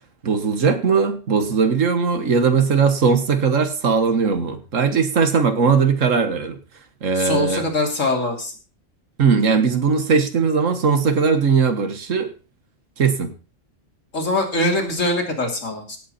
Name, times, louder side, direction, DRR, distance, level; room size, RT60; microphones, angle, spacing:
voice 1, 0.2-6.6 7.0-7.6 9.2-12.3 13.0-13.3, right 5 dB, 85° right, 9 dB, 1.9 m, -19 dB
voice 2, 7.1-8.5 14.1-16.0, left 1 dB, 80° left, 2 dB, 3.3 m, -22 dB
17.0 x 8.4 x 4.3 m, 0.34 s
omnidirectional pair, 1.3 m